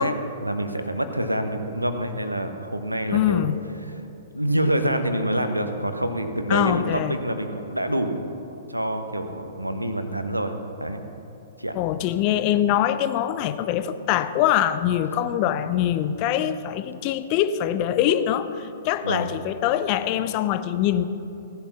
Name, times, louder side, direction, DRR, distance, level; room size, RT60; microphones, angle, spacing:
voice 1, 0.0-3.5 4.3-8.3 8.7-10.5 10.8-11.0 11.6-11.8 19.0-19.3, right 1 dB, 90° right, 7 dB, 1.3 m, -26 dB
voice 2, 3.1-3.6 6.5-7.2 11.7-21.0, left 11 dB, 35° left, 13 dB, 0.7 m, -23 dB
17.0 x 11.5 x 6.1 m, 3.0 s
figure-of-eight pair, 110°, 0 cm